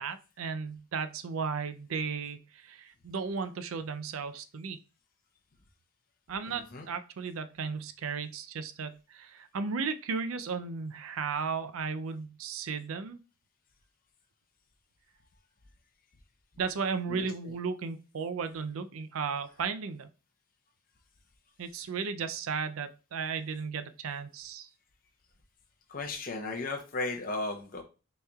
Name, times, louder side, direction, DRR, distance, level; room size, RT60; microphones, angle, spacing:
voice 1, 0.0-4.8 6.3-13.2 16.6-20.1 21.6-24.7, right 5 dB, 75° right, 10 dB, 0.5 m, -35 dB
voice 2, 6.5-6.8 17.1-17.3 25.9-27.8, left 2 dB, 40° left, 2 dB, 0.7 m, -35 dB
6.3 x 3.0 x 2.3 m, 0.32 s
head